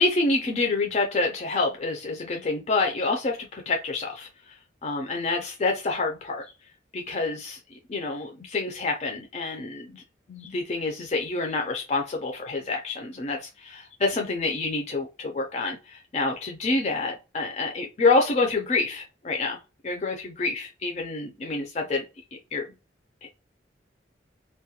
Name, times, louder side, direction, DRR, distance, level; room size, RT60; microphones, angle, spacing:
voice 1, 0.0-4.6 4.8-6.5 6.9-7.6 7.9-10.0 10.3-19.6 19.8-22.1 22.5-22.7, left 3 dB, 35° left, 0.4 m, -27 dB
2.3 x 2.1 x 2.7 m
head